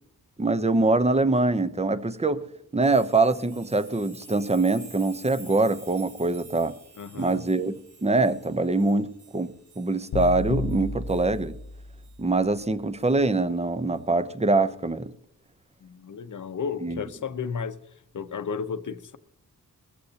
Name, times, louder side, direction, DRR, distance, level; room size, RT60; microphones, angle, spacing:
voice 1, 0.4-2.4 2.7-6.7 7.1-7.7 8.0-11.5 12.2-15.1 16.8-17.0, right 3 dB, 20° right, 0.8 m, -24 dB
sound 1, 2.8-11.5 12.0-12.2 13.0-13.1, right 3 dB, 85° right, 4.3 m, -50 dB
voice 2, 7.0-7.4 15.8-17.8 18.1-19.2, left 6 dB, 55° left, 0.9 m, -33 dB
sound 2, 10.1-12.2, left 2 dB, 80° left, 0.9 m, -32 dB
20.0 x 14.5 x 2.9 m
wide cardioid pair, 85°, 36 cm